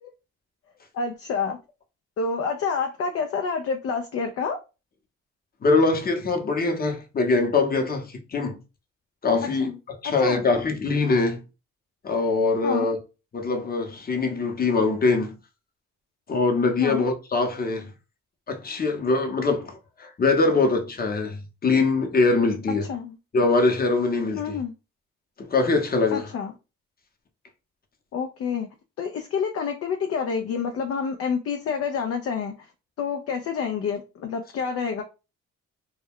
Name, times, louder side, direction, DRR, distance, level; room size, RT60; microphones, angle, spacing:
voice 1, 0.9-1.6 2.2-4.6 9.6-9.8 10.0-10.4 12.6-12.9 16.8-17.0 22.8-23.2 24.4-24.7 26.1-26.5 28.1-28.7 29.0-32.7 33.0-35.0, left 5 dB, 50° left, 0.4 m, -28 dB
voice 2, 5.6-8.6 9.2-11.4 12.0-13.0 13.3-15.4 16.3-17.9 18.5-22.9 23.3-24.6 25.5-26.3, left 3 dB, 30° left, 0.8 m, -23 dB
2.3 x 2.2 x 3.4 m
cardioid pair, 90°, 30 cm